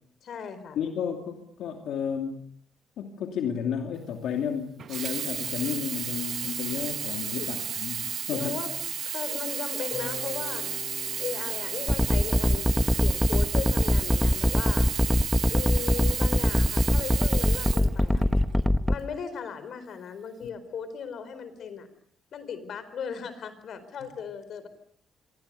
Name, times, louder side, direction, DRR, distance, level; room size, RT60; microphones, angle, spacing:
voice 1, 0.2-0.8 7.4-7.5 8.3-8.7 9.0-10.7 11.2-12.7 13.0-14.9 15.5-18.2 18.9-21.9 22.3-24.7, left 6 dB, 65° left, 13 dB, 4.5 m, -37 dB
voice 2, 0.7-2.4 3.0-8.6, left 7 dB, 90° left, 3 dB, 2.7 m, -32 dB
Sink (filling or washing), 4.8-18.6 19.3-19.4, right 8 dB, 60° right, 1.1 m, -33 dB
Keyboard (musical), 9.9-16.0, left 5 dB, 45° left, 6.9 m, -47 dB
sound 1, 11.9-19.0, left 1 dB, 5° left, 1.0 m, -22 dB
27.0 x 23.5 x 6.9 m, 0.65 s
cardioid pair, 115°, 0 cm